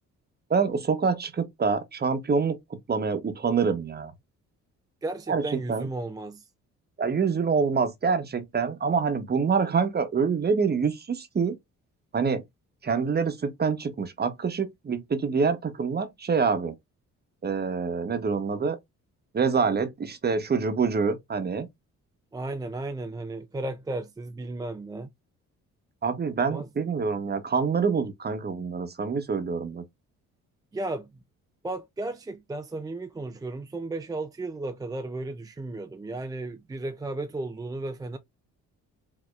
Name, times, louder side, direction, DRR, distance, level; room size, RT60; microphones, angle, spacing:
voice 1, 0.5-4.1 5.3-5.9 7.0-11.6 12.1-12.4 12.8-16.7 17.4-18.8 19.3-21.7 26.0-29.8, right 5 dB, 35° right, 1.0 m, -26 dB
voice 2, 5.0-6.5 22.3-25.1 26.5-26.7 30.7-31.1 31.6-38.2, right 2 dB, 15° right, 0.4 m, -34 dB
5.2 x 2.8 x 2.4 m
cardioid pair, 90°, 30 cm